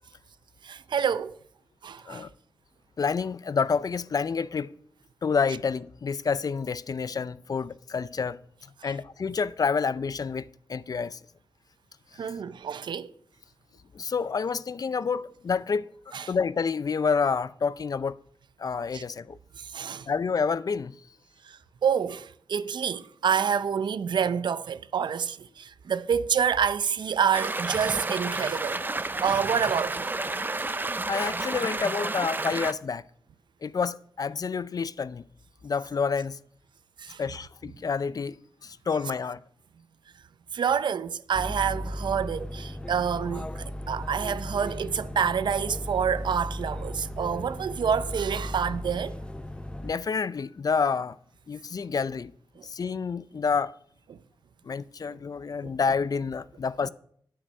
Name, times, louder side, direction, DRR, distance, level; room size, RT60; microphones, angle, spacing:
voice 1, 0.6-1.3 1.8-2.3 8.8-8.9 12.2-13.1 16.1-16.3 18.9-19.0 19.6-20.1 21.5-28.8 29.2-30.1 37.0-37.2 40.5-43.5 43.9-49.1 52.6-52.7 55.6-55.7, right 7 dB, 80° right, 0.5 m, -28 dB
voice 2, 3.0-4.7 5.2-8.4 8.8-11.2 13.9-15.9 16.3-18.2 18.6-19.4 20.1-21.0 31.1-33.0 33.6-35.2 35.6-36.4 37.2-39.4 49.8-51.2 51.5-52.3 52.6-53.7 54.7-56.9, left 5 dB, 55° left, 0.4 m, -28 dB
sound 1, 27.3-32.7, right 2 dB, 25° right, 0.6 m, -31 dB
sound 2, 41.3-49.9, left 1 dB, 15° left, 0.6 m, -36 dB
9.3 x 8.8 x 5.3 m
cardioid pair, 60°, 8 cm